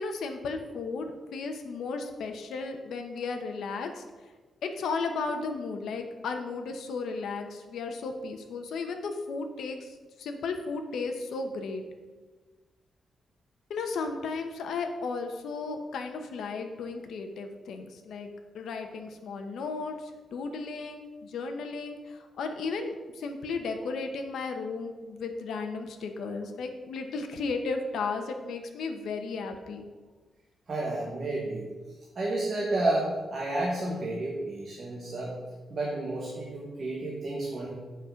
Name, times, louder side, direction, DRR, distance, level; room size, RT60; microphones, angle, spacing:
voice 1, 0.0-4.0 4.6-11.8 13.7-18.3 18.5-29.8, left 4 dB, 75° left, 5 dB, 1.0 m, -34 dB
voice 2, 30.7-31.7 32.1-35.4 35.7-37.7, right 2 dB, 35° right, -3 dB, 1.3 m, -31 dB
7.8 x 5.4 x 5.7 m, 1.3 s
wide cardioid pair, 180°, 0 cm